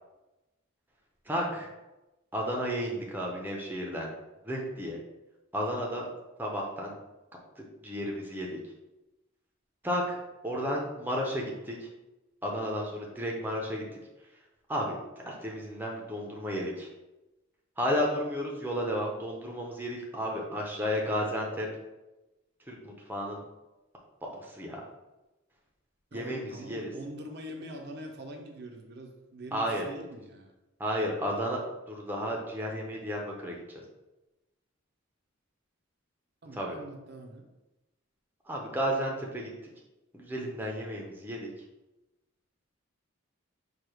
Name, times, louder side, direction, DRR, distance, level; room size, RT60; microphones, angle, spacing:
voice 1, 1.3-1.7 2.3-4.1 4.4-5.0 5.5-6.1 6.4-6.9 7.8-8.6 9.8-10.2 10.4-11.7 12.4-13.8 14.7-15.0 15.3-16.9 17.8-21.7 22.7-23.4 24.3-24.8 26.1-26.9 29.5-29.8 30.8-31.6 31.9-33.6 36.5-36.8 38.5-39.5 40.1-41.5, equal, 10° right, -1 dB, 0.6 m, -32 dB
voice 2, 26.1-30.5 36.4-37.5, right 1 dB, 50° right, 2 dB, 0.6 m, -44 dB
4.7 x 2.3 x 4.8 m, 1.0 s
head